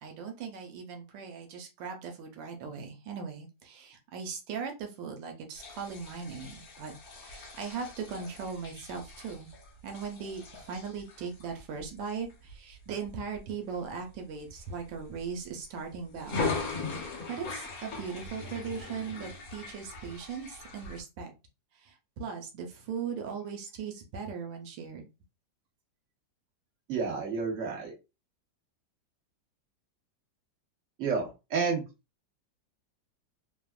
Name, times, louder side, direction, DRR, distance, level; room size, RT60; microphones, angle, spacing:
voice 1, 0.0-9.5 9.8-21.3 21.7-25.1, right 6 dB, 85° right, 3 dB, 1.4 m, -39 dB
sound 1, 5.5-13.4 13.9-14.1 14.5-15.6 16.1-21.0, left 3 dB, 60° left, 1.2 m, -40 dB
voice 2, 26.9-27.9 31.0-31.8, right 5 dB, 50° right, -1 dB, 1.2 m, -30 dB
3.4 x 2.0 x 2.3 m, 0.27 s
omnidirectional pair, 2.0 m